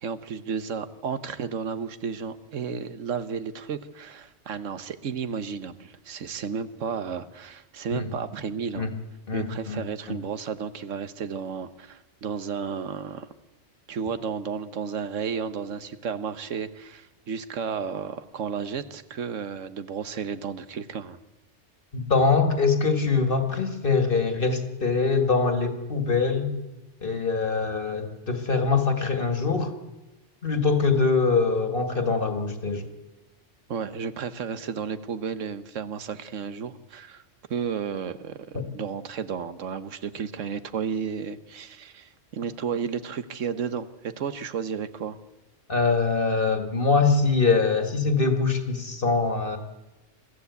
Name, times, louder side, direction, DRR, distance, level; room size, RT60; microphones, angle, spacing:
voice 1, 0.0-8.9 9.3-13.3 13.9-21.2 33.7-37.2 37.5-45.2, right 6 dB, 90° right, 12 dB, 1.4 m, -33 dB
voice 2, 9.3-9.8 10.1-10.2 21.9-26.5 27.0-29.7 30.4-32.9 45.7-49.6, left 4 dB, 45° left, 7 dB, 2.1 m, -23 dB
22.5 x 14.5 x 8.2 m, 1.0 s
omnidirectional pair, 1.3 m